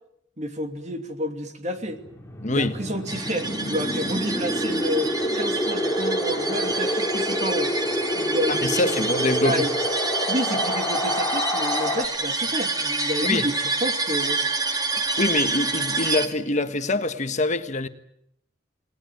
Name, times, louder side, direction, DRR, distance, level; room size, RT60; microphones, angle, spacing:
voice 1, 0.4-2.0 2.5-7.7 8.1-9.1 9.4-9.7 10.3-14.4, equal, 40° right, 2.7 m, -30 dB
Wind, 1.9-12.1, equal, 15° left, 3.2 m, -27 dB
voice 2, 2.4-2.7 8.5-9.6 13.2-13.5 15.2-17.9, left 2 dB, 40° left, 1.4 m, -24 dB
sound 1, 3.1-16.3, right 3 dB, 20° right, 2.1 m, -28 dB
28.5 x 19.0 x 9.4 m
head